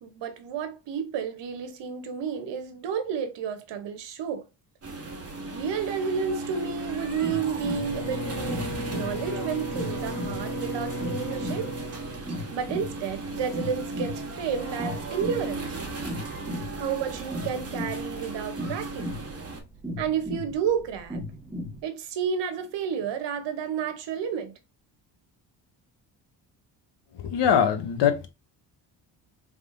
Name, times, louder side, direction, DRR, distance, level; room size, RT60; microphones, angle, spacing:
voice 1, 0.0-4.5 5.5-11.7 12.2-15.8 16.7-19.2 20.0-21.2 21.8-24.5, right 7 dB, 65° right, 0.9 m, -31 dB
sound 1, 4.8-19.6, right 3 dB, 30° right, 1.3 m, -36 dB
sound 2, 6.9-21.8, left 1 dB, 5° right, 1.3 m, -37 dB
Bowed string instrument, 7.6-12.9, equal, 40° left, 1.3 m, -36 dB
voice 2, 27.1-28.3, left 8 dB, 60° left, 0.9 m, -22 dB
3.5 x 3.3 x 2.6 m
supercardioid pair, 70°, 46 cm